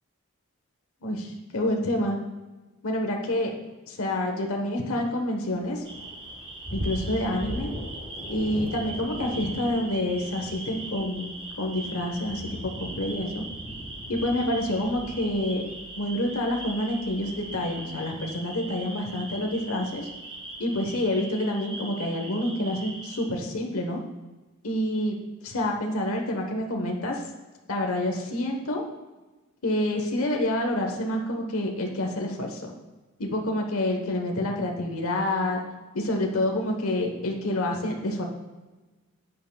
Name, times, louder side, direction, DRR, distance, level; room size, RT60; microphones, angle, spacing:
voice 1, 1.0-2.2 2.8-3.5 3.9-5.8 6.7-7.7 8.3-12.4 12.8-13.4 14.1-15.6 16.0-20.1 20.6-24.0 24.6-25.1 25.4-27.2 27.7-28.8 29.6-32.6 33.2-35.6 35.9-38.3, left 1 dB, 70° left, 2 dB, 1.2 m, -28 dB
Thunder, 5.4-21.0, equal, 15° left, 3.0 m, -44 dB
sound 1, 5.8-23.2, right 1 dB, 25° right, 1.2 m, -39 dB
11.0 x 9.0 x 2.3 m, 1.2 s
head